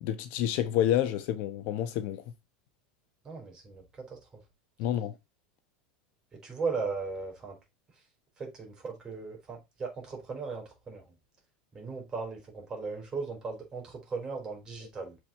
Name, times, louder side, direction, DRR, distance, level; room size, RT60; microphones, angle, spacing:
voice 1, 0.0-2.2 4.8-5.2, left 11 dB, 50° left, 1.0 m, -29 dB
voice 2, 3.2-4.4 6.3-7.6 8.4-11.1 11.7-15.2, right 4 dB, 20° right, 4.3 m, -37 dB
7.5 x 4.7 x 4.3 m
supercardioid pair, 155°, 4 cm